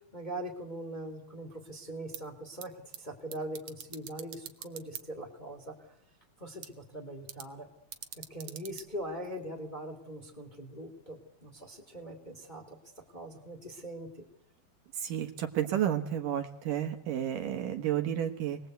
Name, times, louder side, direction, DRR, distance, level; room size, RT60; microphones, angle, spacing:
voice 1, 0.1-2.7 3.0-5.7 6.4-7.7 8.2-12.8 13.1-14.1, right 1 dB, 15° left, 3 dB, 2.4 m, -41 dB
sound 1, 1.9-9.8, right 9 dB, 85° right, 1.2 m, -49 dB
voice 2, 15.0-18.6, right 10 dB, 65° right, 5 dB, 2.7 m, -31 dB
27.0 x 20.5 x 8.1 m, 0.76 s
omnidirectional pair, 4.4 m